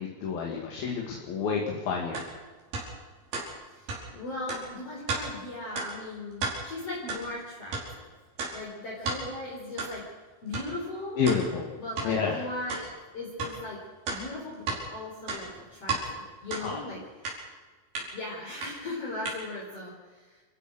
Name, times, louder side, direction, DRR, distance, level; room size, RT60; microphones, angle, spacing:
voice 1, 0.0-2.2 11.2-11.7 12.0-12.5 16.6-16.8, left 6 dB, 80° left, 0 dB, 4.1 m, -29 dB
sound 1, 2.1-2.3 2.7-2.9 3.3-3.5 3.9-4.0 4.5-4.6 5.1-5.2 5.8-5.9 6.3-6.6 7.1-7.2 7.7-7.9 8.4-8.5 9.1-9.2 9.8-9.9 10.5-10.7 11.3-11.4 12.0-12.1 12.7-12.8 13.4-13.5 14.1-14.8 15.2-16.0 16.5-16.7 17.2-17.4 18.0-18.1 18.6-18.7 19.3-19.4, right 4 dB, 85° right, 7.0 m, -32 dB
voice 2, 3.7-8.1 8.5-10.0 10.4-11.2 11.8-13.8 14.1-17.0 18.1-20.4, left 2 dB, 40° left, -4 dB, 5.4 m, -38 dB
29.0 x 15.5 x 6.4 m, 1.4 s
omnidirectional pair, 4.2 m